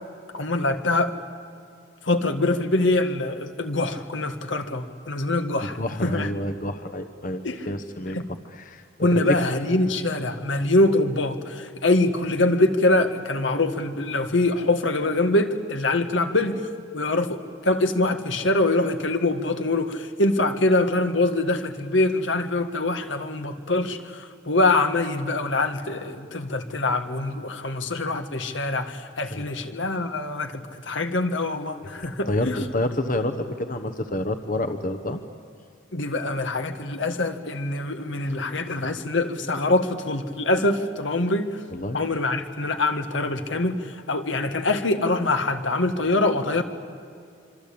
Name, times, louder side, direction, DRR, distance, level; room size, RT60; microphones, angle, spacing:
voice 1, 0.3-1.2 2.0-6.3 7.4-7.7 8.1-8.3 9.0-16.7 16.9-32.6 35.9-41.6 41.9-46.6, left 2 dB, 80° left, 7 dB, 1.9 m, -24 dB
voice 2, 5.6-8.2 8.5-9.4 29.3-29.5 32.0-35.2 41.7-42.0, left 1 dB, 45° left, 8 dB, 1.1 m, -29 dB
26.0 x 25.0 x 8.7 m, 2.4 s
head